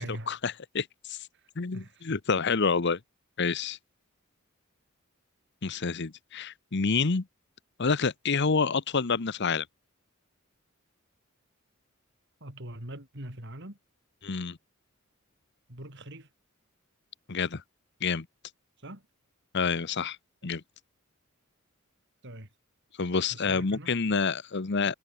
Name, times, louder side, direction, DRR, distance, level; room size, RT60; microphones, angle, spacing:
voice 1, 0.0-1.3 1.6-3.0 3.4-3.8 5.6-7.2 7.8-9.7 14.2-14.6 17.3-17.6 18.0-18.3 19.5-20.2 20.4-20.6 23.0-24.9, left 5 dB, 55° left, 0.9 m, -28 dB
voice 2, 1.3-2.0 12.4-13.8 15.7-16.3 18.8-19.1 22.2-22.5 23.3-23.9, right 1 dB, 55° right, 5.3 m, -42 dB
head